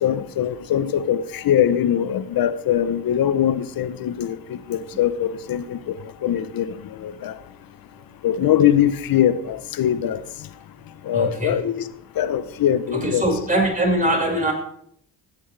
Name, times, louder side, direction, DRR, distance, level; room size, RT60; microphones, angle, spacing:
voice 1, 0.0-5.9 6.2-6.7 7.0-7.4 8.2-10.2 11.0-11.9 12.2-13.2, left 10 dB, 65° left, 1.0 m, -22 dB
voice 2, 11.1-11.6 12.9-14.5, right 1 dB, 20° right, 5.4 m, -22 dB
16.5 x 9.7 x 3.4 m
cardioid pair, 75°, 37 cm